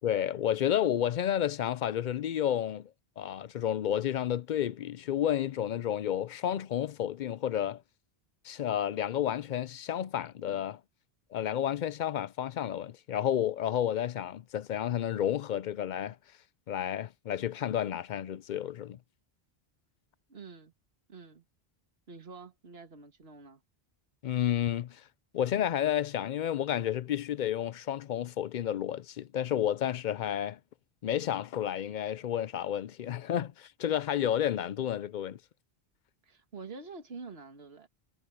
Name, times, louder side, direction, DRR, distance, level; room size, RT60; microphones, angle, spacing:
voice 1, 0.0-2.9 3.2-7.8 8.4-10.8 11.3-16.2 16.7-19.0 24.2-25.0 25.3-30.6 31.0-35.4, left 10 dB, 60° left, 0.6 m, -31 dB
voice 2, 20.3-20.7 21.1-21.4 22.1-23.6 36.2-37.9, right 4 dB, 70° right, 2.1 m, -47 dB
omnidirectional pair, 1.1 m